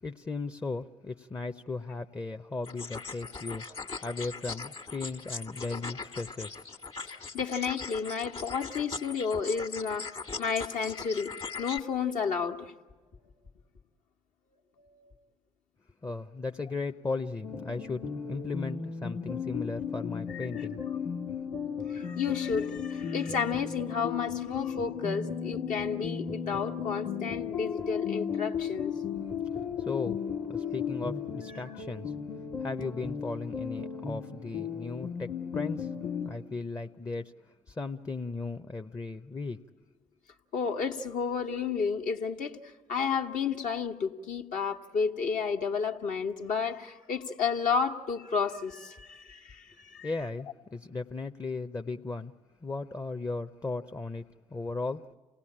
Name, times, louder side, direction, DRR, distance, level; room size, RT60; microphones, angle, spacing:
voice 1, 0.0-6.6 16.0-20.8 29.8-30.2 30.5-32.1 32.6-35.9 36.2-37.3 37.7-39.6 50.0-52.3 52.6-54.2 54.5-55.1, left 3 dB, 20° left, 7 dB, 0.7 m, -36 dB
sound 1, 2.6-11.8, left 4 dB, 40° left, 1.6 m, -40 dB
voice 2, 7.1-10.1 10.4-11.3 11.6-12.7 14.8-15.1 20.3-20.7 21.9-28.9 40.5-42.6 42.9-50.1, left 6 dB, 65° left, 3 dB, 1.4 m, -32 dB
sound 2, 17.4-36.3, left 7 dB, 90° left, 1.7 m, -35 dB
28.5 x 17.5 x 8.7 m, 1.5 s
hypercardioid pair, 50°, 14 cm